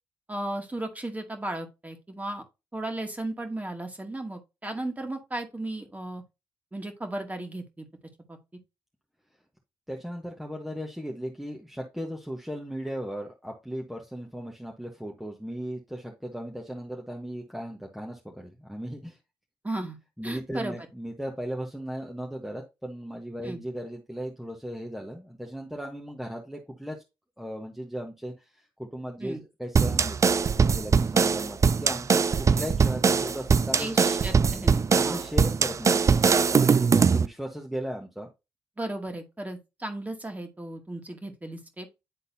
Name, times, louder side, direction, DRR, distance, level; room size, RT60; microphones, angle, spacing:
voice 1, 0.3-2.4 2.7-6.2 6.7-7.9 8.3-8.4 19.6-20.0 20.2-20.9 23.4-23.6 29.2-29.4 33.8-35.2 38.8-41.9, right 1 dB, 20° right, 2.0 m, -35 dB
voice 2, 9.9-19.2 20.2-27.0 27.4-34.1 34.9-38.3, equal, ahead, 1.3 m, -37 dB
sound 1, 29.7-37.3, right 5 dB, 35° right, 0.4 m, -22 dB
10.0 x 3.8 x 2.8 m
supercardioid pair, 60°, 9 cm